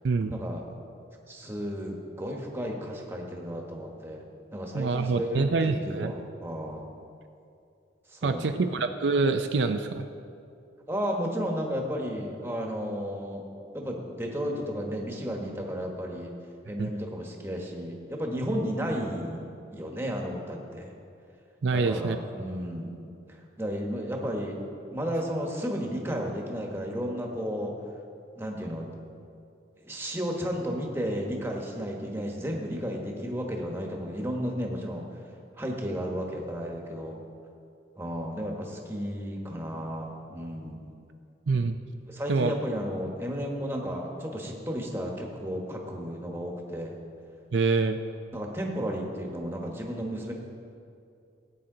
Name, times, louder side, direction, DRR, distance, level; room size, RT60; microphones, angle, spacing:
voice 1, 0.3-0.6 1.3-4.2 4.5-6.9 8.1-8.7 10.9-13.4 13.7-16.3 16.7-20.9 21.7-22.9 23.3-24.6 24.9-27.7 28.3-28.9 29.8-35.1 35.6-37.2 38.0-40.9 42.1-47.0 48.3-50.3, equal, 15° right, 0 dB, 1.2 m, -33 dB
voice 2, 4.7-6.1 8.2-10.1 16.8-16.9 21.6-22.2 41.5-41.8 42.3-42.5 47.5-48.0, right 4 dB, 70° right, 7 dB, 0.4 m, -25 dB
16.5 x 8.9 x 3.8 m, 2.5 s
head